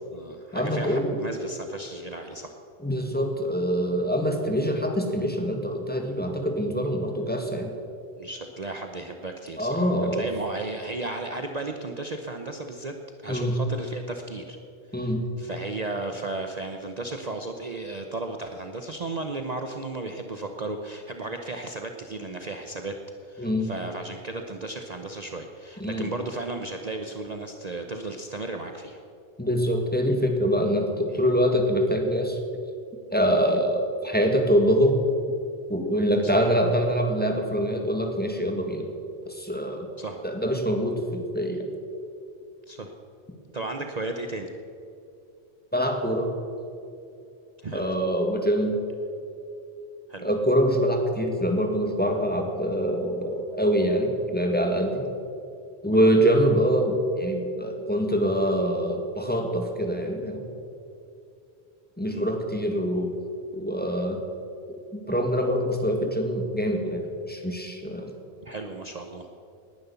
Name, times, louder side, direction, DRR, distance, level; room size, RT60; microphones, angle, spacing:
voice 1, 0.0-2.5 8.2-12.9 13.2-14.6 15.0-23.0 23.2-29.0 31.1-31.2 36.2-36.4 40.0-40.2 42.7-42.9 43.5-44.5 47.6-47.9 50.1-50.3 55.9-56.1 62.1-62.3 68.4-69.3, right 2 dB, 40° right, 4 dB, 1.0 m, -35 dB
voice 2, 0.5-1.2 2.8-7.7 9.6-10.3 13.3-13.5 14.9-15.3 23.4-23.7 25.8-26.1 29.4-32.4 33.1-35.0 35.7-38.9 39.3-39.9 40.2-41.7 45.7-46.3 47.7-48.8 50.2-55.0 55.8-60.4 62.0-63.2 63.5-64.2 64.7-68.1, equal, 10° left, 2 dB, 1.8 m, -24 dB
19.0 x 11.0 x 7.0 m, 2.6 s
omnidirectional pair, 1.1 m